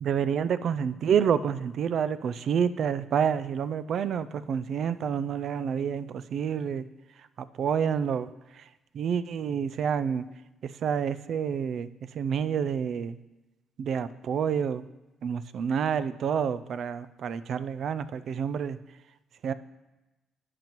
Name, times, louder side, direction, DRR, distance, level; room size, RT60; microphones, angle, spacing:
voice 1, 0.0-6.9 7.4-8.6 8.9-10.3 10.6-11.9 12.1-13.2 13.8-14.9 15.2-18.8 19.4-19.5, right 7 dB, 65° right, 14 dB, 0.4 m, -28 dB
11.0 x 9.0 x 3.0 m, 1.1 s
cardioid pair, 90°, 0 cm